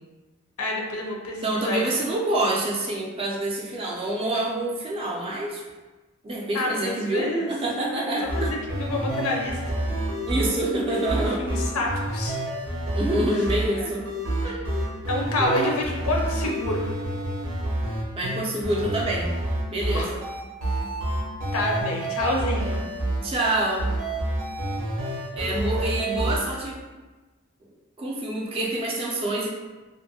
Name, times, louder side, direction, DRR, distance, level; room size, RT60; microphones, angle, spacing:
voice 1, 0.6-1.8 6.5-7.5 8.0-8.1 8.3-9.6 11.4-12.4 13.8-13.9 14.4-14.5 15.1-16.9 19.8-20.1 21.5-22.8, left 1 dB, 85° left, 0 dB, 0.5 m, -28 dB
voice 2, 1.4-5.6 6.2-8.5 10.2-11.4 12.9-14.1 14.4-14.6 15.4-15.7 18.2-19.3 19.7-20.2 23.2-23.9 25.3-26.8 28.0-29.5, right 1 dB, 25° right, -3 dB, 0.4 m, -27 dB
sound 1, 8.2-26.4, right 1 dB, 90° right, 0.7 m, -29 dB
2.5 x 2.5 x 2.7 m, 1.2 s
head